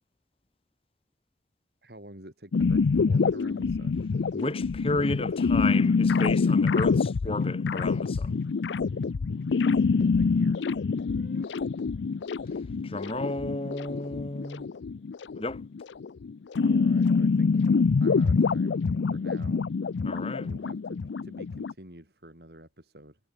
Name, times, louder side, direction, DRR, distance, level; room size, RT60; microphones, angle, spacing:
voice 1, 1.8-4.0 10.2-10.6 16.6-18.8 19.1-19.7 20.4-23.2, right 1 dB, 65° right, 5.8 m, -49 dB
sound 1, 2.5-21.7, left 4 dB, 90° left, 0.5 m, -26 dB
voice 2, 4.3-8.4 12.8-14.7 15.4-15.6 20.0-20.5, left 2 dB, 30° left, 1.4 m, -32 dB
sound 2, 8.2-14.1, left 1 dB, 55° left, 3.7 m, -55 dB
head